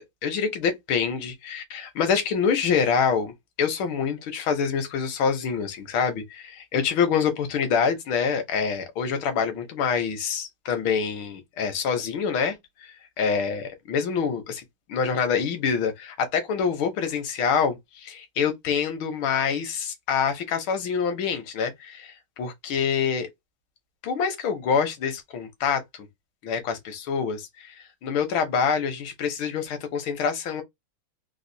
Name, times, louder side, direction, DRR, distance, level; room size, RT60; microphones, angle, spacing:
voice 1, 0.0-14.6 14.9-23.3 24.0-26.1 26.4-30.6, left 6 dB, 75° left, 1.7 m, -26 dB
4.0 x 2.4 x 2.6 m
omnidirectional pair, 2.3 m